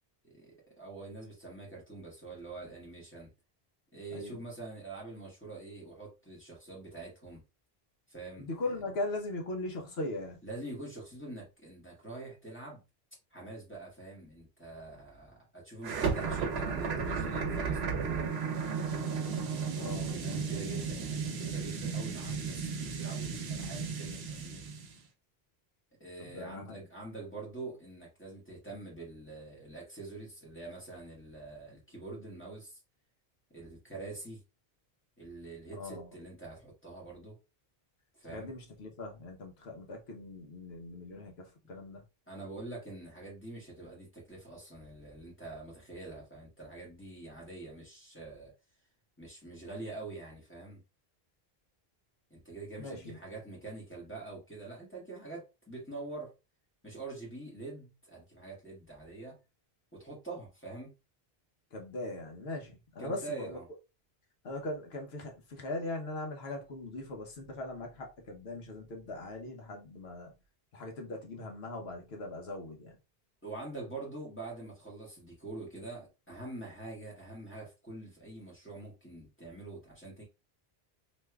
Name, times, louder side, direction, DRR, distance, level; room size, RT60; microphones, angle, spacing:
voice 1, 0.2-3.3 3.9-7.4 8.1-8.5 10.4-12.8 13.3-18.3 19.8-24.6 26.0-32.8 33.5-34.4 35.2-37.4 38.1-38.5 42.3-48.5 49.2-50.8 52.3-56.3 56.8-59.4 59.9-60.9 63.0-63.7 73.4-80.2, right 2 dB, 10° left, 1.6 m, -45 dB
voice 2, 4.1-4.4 8.4-10.4 19.8-20.1 26.3-26.8 35.8-36.1 38.3-42.0 52.8-53.2 61.7-63.6 64.4-70.3 70.7-72.9, left 2 dB, 80° left, 1.2 m, -40 dB
sound 1, 15.8-25.0, right 5 dB, 85° right, 1.0 m, -34 dB
3.4 x 3.0 x 2.3 m
omnidirectional pair, 1.0 m